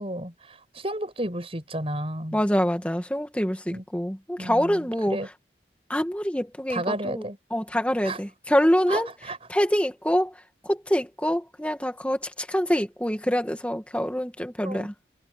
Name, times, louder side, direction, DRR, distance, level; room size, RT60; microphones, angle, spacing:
voice 1, 0.0-2.4 3.7-3.8 4.4-5.3 6.7-7.4 8.0-8.2 8.9-9.4 14.6-14.9, right 1 dB, 30° right, 6.3 m, -32 dB
voice 2, 2.3-5.2 5.9-7.3 7.5-9.1 9.5-10.3 10.6-14.9, equal, 5° left, 2.1 m, -25 dB
head